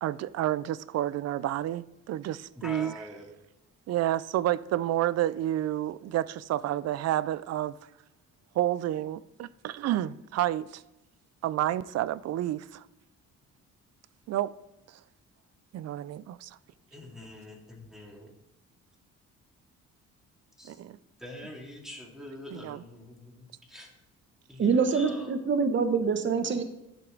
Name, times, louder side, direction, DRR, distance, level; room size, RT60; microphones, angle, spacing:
voice 1, 0.0-2.9 3.9-7.8 8.5-10.8 11.4-12.9 14.3-14.5 14.9-15.0 15.7-16.6 20.7-21.0 22.5-22.8, right 13 dB, 60° right, 0.4 m, -30 dB
voice 2, 2.6-3.3 16.9-18.3 20.6-20.8 21.2-23.9 24.5-25.3, left 1 dB, ahead, 2.5 m, -44 dB
voice 3, 24.6-26.6, right 5 dB, 40° right, 0.9 m, -25 dB
11.0 x 5.8 x 3.8 m
cardioid pair, 90°, 30 cm